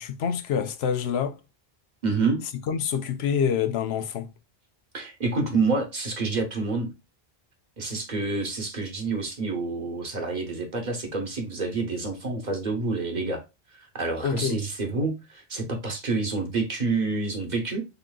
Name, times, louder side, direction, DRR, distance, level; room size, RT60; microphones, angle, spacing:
voice 1, 0.0-1.4 2.7-4.3 14.2-14.6, left 7 dB, 90° left, 0.9 m, -26 dB
voice 2, 2.0-2.4 4.9-6.9 7.8-13.4 13.8-17.9, right 3 dB, 45° right, 1.1 m, -28 dB
4.0 x 3.7 x 2.3 m
omnidirectional pair, 1.0 m